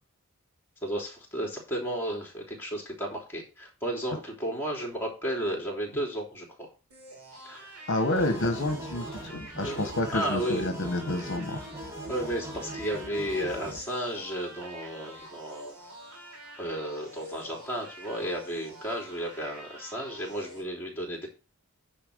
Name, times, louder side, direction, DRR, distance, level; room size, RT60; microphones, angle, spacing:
voice 1, 0.8-6.7 7.5-7.7 9.0-10.7 12.1-15.7 16.6-21.3, equal, 10° left, -1 dB, 3.4 m, -33 dB
sound 1, 6.9-20.6, right 1 dB, 85° right, 3.2 m, -47 dB
voice 2, 7.9-11.6, left 1 dB, 55° left, 6 dB, 1.2 m, -29 dB
sound 2, 8.2-13.8, right 1 dB, 10° right, 1.9 m, -40 dB
10.0 x 4.4 x 6.6 m, 0.32 s
head